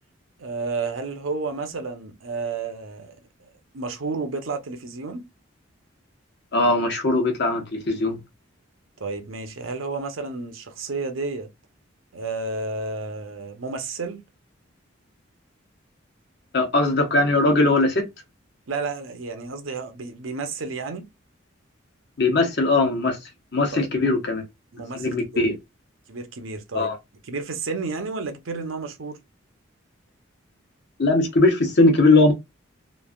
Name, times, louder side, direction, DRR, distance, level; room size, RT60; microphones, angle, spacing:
voice 1, 0.4-5.2 9.0-11.5 12.1-14.2 18.7-21.1 23.7-23.9 24.7-25.4 26.1-27.0 27.2-29.2, right 4 dB, 85° right, 0.7 m, -31 dB
voice 2, 6.5-8.2 16.5-18.1 22.2-23.2 23.5-24.4 24.9-25.5 26.7-27.0 31.0-32.3, left 2 dB, 55° left, 0.9 m, -20 dB
3.2 x 2.5 x 2.3 m
head